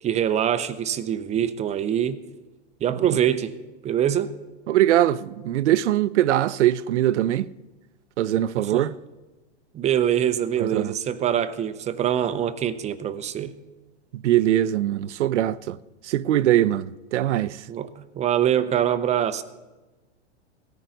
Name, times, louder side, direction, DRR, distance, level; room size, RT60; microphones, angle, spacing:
voice 1, 0.0-2.2 2.8-3.5 3.8-4.3 8.6-8.9 9.7-13.5 17.7-19.4, right 10 dB, 20° right, 0.6 m, -24 dB
voice 2, 4.7-7.5 8.2-8.9 10.6-10.9 14.1-15.8 16.0-17.6, right 13 dB, 80° right, 0.6 m, -22 dB
18.0 x 14.0 x 3.9 m
hypercardioid pair, 125°, 34 cm